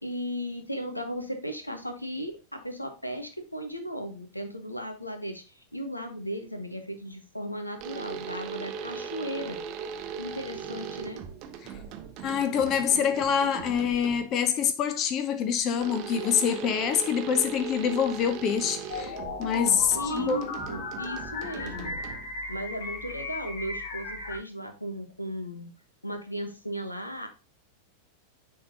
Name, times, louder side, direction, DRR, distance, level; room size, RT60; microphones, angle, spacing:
voice 1, 0.0-9.6 10.2-11.2 19.9-22.0 22.5-25.7 26.0-27.3, equal, 85° left, 1.0 m, -36 dB
sound 1, 7.8-14.4 15.8-22.5, right 7 dB, 40° right, 0.8 m, -39 dB
voice 2, 12.2-20.4, left 7 dB, 35° left, 0.7 m, -26 dB
sound 2, 18.9-24.4, left 4 dB, 50° left, 2.0 m, -36 dB
9.3 x 3.7 x 2.7 m
figure-of-eight pair, 90°, 0 cm